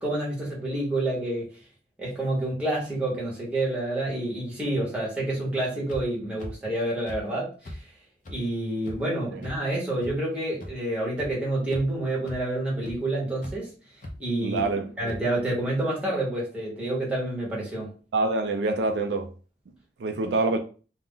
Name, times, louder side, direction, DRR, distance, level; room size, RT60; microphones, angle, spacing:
voice 1, 0.0-1.5 2.0-7.8 8.3-13.7 14.2-14.6 15.0-17.9, right 1 dB, 5° right, 0.9 m, -28 dB
sound 1, 5.9-6.0 6.4-6.5 7.1-7.2 7.6-7.8 8.3-8.4 8.9-9.0 9.4-9.5 10.0-10.1 10.6-10.7 11.2-11.3 11.7-12.0 12.3-12.4 12.8-12.9 13.4-13.5 14.0-14.1 14.6-14.7 15.1-15.2, left 1 dB, 45° left, 0.6 m, -38 dB
voice 2, 14.4-14.9 18.1-19.3 20.0-20.6, right 3 dB, 70° right, 0.3 m, -25 dB
2.4 x 2.0 x 3.6 m
head